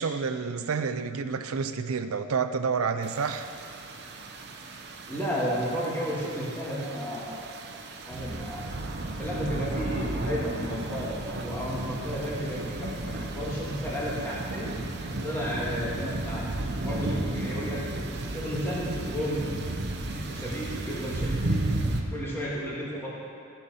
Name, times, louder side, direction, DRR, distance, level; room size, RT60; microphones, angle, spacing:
voice 1, 0.0-3.5, right 5 dB, 90° right, 10 dB, 0.5 m, -29 dB
sound 1, 3.0-22.0, right 2 dB, 55° right, 0.8 m, -34 dB
voice 2, 5.1-7.7 8.1-8.6 9.2-14.7 15.2-16.5 16.8-19.4 20.1-21.6 22.1-23.1, equal, 10° left, -6 dB, 1.8 m, -33 dB
13.0 x 6.9 x 5.5 m, 2.7 s
head